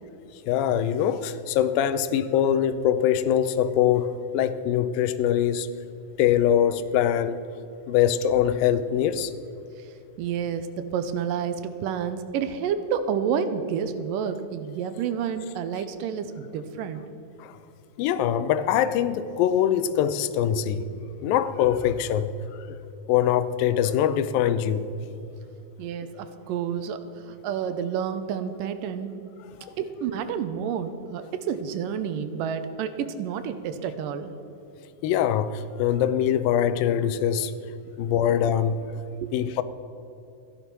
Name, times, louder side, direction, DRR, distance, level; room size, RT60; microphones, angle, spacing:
voice 1, 0.5-5.7 6.2-7.4 7.9-9.3 17.4-17.5 18.0-20.8 21.2-22.3 22.7-22.8 23.1-24.9 29.6-29.7 35.0-37.5 38.0-38.8 39.3-39.6, left 10 dB, 85° left, 2.4 m, -23 dB
voice 2, 10.2-17.0 25.8-29.1 29.8-34.3 39.2-39.3, right 7 dB, 80° right, 2.4 m, -29 dB
14.5 x 11.0 x 6.0 m
omnidirectional pair, 4.0 m